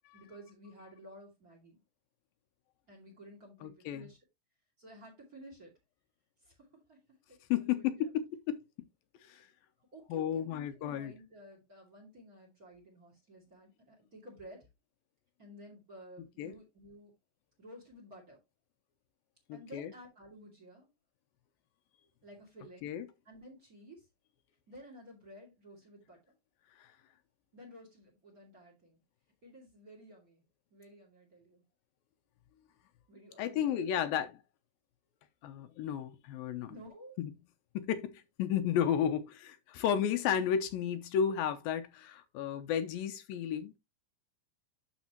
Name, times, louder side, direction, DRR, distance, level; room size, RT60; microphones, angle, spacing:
voice 1, 0.1-1.8 2.9-4.2 4.8-5.7 6.4-8.1 9.9-14.7 15.4-17.1 17.6-18.4 19.5-20.9 22.2-22.9 23.2-24.1 24.7-26.2 27.5-29.0 29.4-30.4 30.7-31.6 33.1-34.2 36.7-37.2, right 1 dB, 25° right, 2.4 m, -53 dB
voice 2, 3.6-4.0 7.5-8.6 9.3-9.5 10.1-11.1 16.4-16.5 19.5-19.9 22.8-23.1 26.8-26.9 33.4-34.4 35.4-36.7 37.2-37.3 37.7-43.8, left 9 dB, 80° left, 2.5 m, -33 dB
11.5 x 4.6 x 3.0 m
omnidirectional pair, 4.2 m